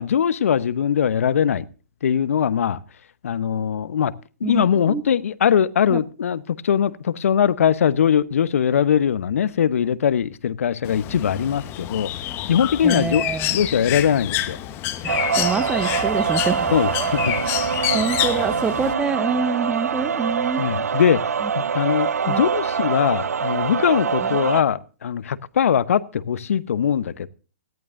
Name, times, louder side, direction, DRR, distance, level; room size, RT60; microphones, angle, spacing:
voice 1, 0.0-1.6 2.0-2.8 3.2-4.1 4.4-12.1 12.5-13.2 13.5-14.6 16.7-17.4 17.8-17.9 20.6-21.2 21.7-27.3, left 8 dB, 65° left, 18 dB, 0.9 m, -21 dB
voice 2, 4.4-5.1 5.9-6.0 12.8-13.6 15.0-17.1 17.9-20.7 21.4-21.5 22.2-22.4 24.2-24.3, right 5 dB, 10° right, 16 dB, 0.9 m, -26 dB
Bird, 10.8-18.9, left 14 dB, 30° left, 1.1 m, -28 dB
sound 1, 15.1-24.6, right 6 dB, 80° right, 0.7 m, -24 dB
18.5 x 14.0 x 2.6 m, 0.36 s
hypercardioid pair, 130°, 8 cm